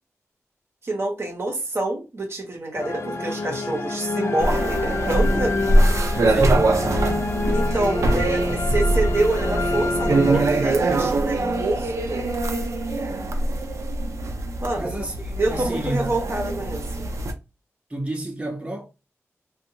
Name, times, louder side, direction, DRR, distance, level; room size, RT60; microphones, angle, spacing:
voice 1, 0.8-5.6 7.5-12.3 14.6-14.9 15.4-17.0, right 2 dB, 55° right, 0.8 m, -27 dB
sound 1, 2.7-11.1, left 2 dB, 60° left, 0.5 m, -27 dB
sound 2, 4.4-17.3, right 2 dB, 70° right, 0.5 m, -23 dB
voice 2, 6.3-6.7 10.3-10.6 14.7-16.1 17.9-18.8, right 1 dB, 20° right, 0.7 m, -30 dB
2.5 x 2.3 x 2.7 m
wide cardioid pair, 80°, 5 cm